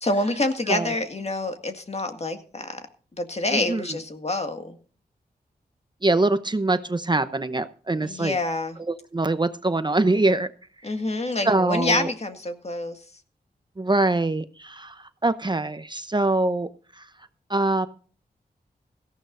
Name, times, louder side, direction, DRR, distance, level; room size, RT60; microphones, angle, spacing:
voice 1, 0.0-2.8 3.2-4.8 8.0-8.8 10.8-13.0, left 2 dB, 40° left, 6 dB, 1.9 m, -27 dB
voice 2, 3.5-3.8 6.0-8.4 8.8-10.5 10.8-10.9 11.4-12.1 13.8-16.7 17.0-17.1 17.5-17.9, right 2 dB, 25° right, 11 dB, 0.8 m, -24 dB
17.5 x 14.5 x 2.6 m, 0.41 s
cardioid pair, 55°, 17 cm